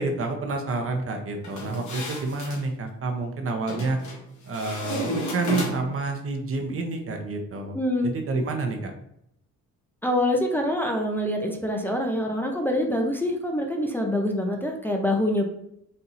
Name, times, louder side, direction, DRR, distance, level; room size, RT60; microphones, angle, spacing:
voice 1, 0.0-4.0 4.4-7.8 8.0-8.9, right 3 dB, 45° right, 4 dB, 0.8 m, -29 dB
sound 1, 1.4-2.6 3.7-4.2 4.5-6.0, equal, 65° left, 1.6 m, -32 dB
voice 2, 7.7-8.1 10.0-15.4, left 1 dB, 5° left, 0 dB, 0.7 m, -25 dB
4.3 x 2.7 x 4.0 m, 0.76 s
cardioid pair, 90°, 30 cm